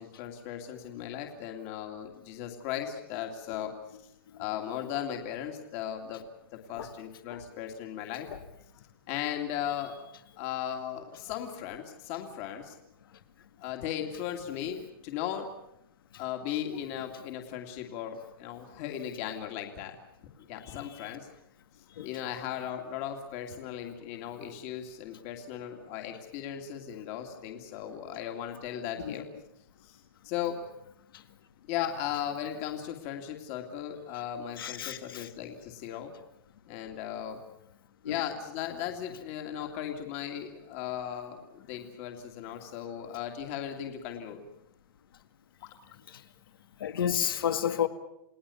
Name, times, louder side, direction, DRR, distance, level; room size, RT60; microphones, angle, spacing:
voice 1, 0.0-3.7 4.4-6.2 6.5-8.3 9.1-10.0 10.4-12.8 13.6-15.5 16.2-20.0 20.5-21.3 22.0-29.3 29.8-30.6 31.7-36.1 36.7-37.4 38.0-44.4 45.6-45.7, left 10 dB, 35° left, 2.5 m, -37 dB
voice 2, 20.6-21.1 22.0-22.2 29.0-29.1 31.1-31.2 34.6-35.3 38.0-38.2 39.6-39.7 46.1-46.2 46.8-47.9, left 9 dB, 70° left, 2.0 m, -32 dB
29.5 x 19.0 x 7.1 m
hypercardioid pair, 160°, 12 cm